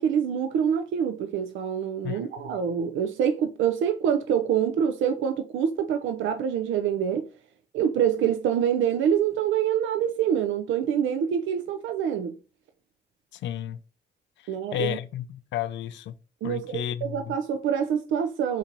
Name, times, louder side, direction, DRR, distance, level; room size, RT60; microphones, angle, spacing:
voice 1, 0.0-7.3 7.7-12.3 14.5-15.0 16.4-18.6, right 8 dB, 75° right, 0.4 m, -26 dB
voice 2, 13.4-13.8 14.7-16.1 16.4-17.3, left 11 dB, 65° left, 0.4 m, -32 dB
4.3 x 2.7 x 2.6 m
cardioid pair, 90°, 20 cm